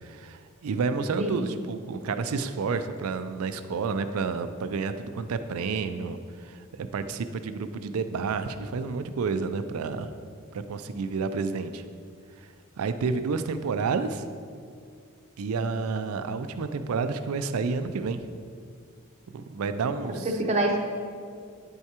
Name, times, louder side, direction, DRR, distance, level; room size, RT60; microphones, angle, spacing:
voice 1, 0.0-10.1 10.5-11.8 12.8-14.2 15.4-18.2 19.3-20.3, right 4 dB, 70° right, 10 dB, 0.4 m, -30 dB
voice 2, 1.2-1.5 20.1-20.8, right 1 dB, 30° right, 2 dB, 0.7 m, -26 dB
9.6 x 4.6 x 2.8 m, 2.2 s
head